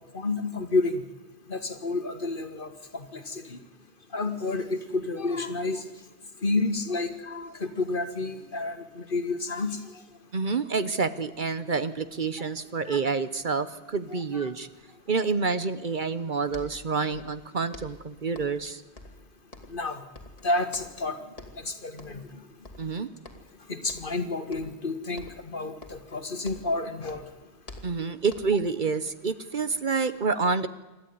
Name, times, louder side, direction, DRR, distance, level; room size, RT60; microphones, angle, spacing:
voice 1, 0.1-1.0 1.5-3.6 4.1-5.8 6.4-10.0 12.9-13.0 14.1-14.5 19.7-20.0 20.4-21.2 21.6-22.2 23.7-27.3, left 3 dB, 55° left, 9 dB, 2.0 m, -30 dB
voice 2, 10.3-14.7 15.1-18.8 22.8-23.1 27.8-30.7, right 4 dB, 50° right, 13 dB, 1.1 m, -28 dB
sound 1, 16.2-16.3 16.5-17.4 17.7-18.7 19.0-19.9 20.1-21.1 21.3-21.7 22.0-22.3 22.6-23.6 23.9-24.2 24.5-24.9 25.2-26.8 27.1-28.7, left 2 dB, 35° left, 2.7 m, -47 dB
27.0 x 13.0 x 9.6 m, 1.1 s
omnidirectional pair, 1.1 m